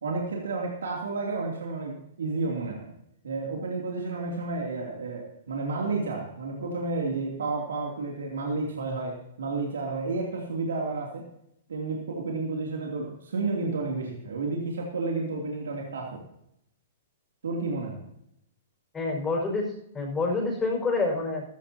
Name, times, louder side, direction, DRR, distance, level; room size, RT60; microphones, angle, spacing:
voice 1, 0.0-2.9 3.2-11.3 11.7-16.2 17.4-18.0, right 3 dB, 80° right, -1 dB, 2.9 m, -31 dB
voice 2, 18.9-21.4, left 3 dB, 15° left, 0 dB, 5.3 m, -27 dB
15.0 x 14.5 x 2.9 m, 0.78 s
hypercardioid pair, 120°, 0 cm